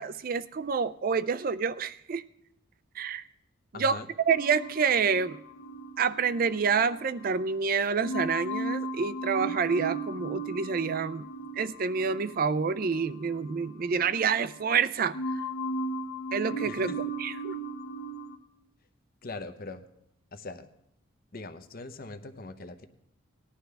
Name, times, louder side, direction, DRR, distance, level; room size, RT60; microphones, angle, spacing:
voice 1, 0.0-2.2 3.0-3.2 3.7-4.0 4.3-5.4 6.0-11.2 11.6-15.2 16.3-16.9 17.2-17.6, right 5 dB, 45° right, 0.4 m, -28 dB
voice 2, 3.7-4.1 16.6-17.0 19.2-19.9 20.3-20.7 21.3-22.9, left 3 dB, 45° left, 0.8 m, -41 dB
sound 1, 4.3-7.6 8.0-14.8 15.1-18.4, right 1 dB, 80° left, 1.3 m, -37 dB
19.0 x 11.0 x 3.4 m
head